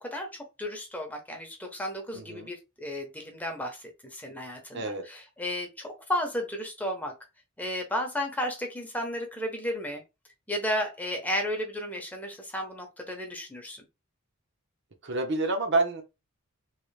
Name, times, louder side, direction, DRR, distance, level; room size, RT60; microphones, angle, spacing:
voice 1, 0.0-7.1 7.6-10.0 10.5-13.8, left 1 dB, 10° left, 0.8 m, -33 dB
voice 2, 2.1-2.5 4.7-5.0 15.0-16.0, right 2 dB, 60° right, 0.9 m, -28 dB
3.2 x 3.0 x 3.3 m
head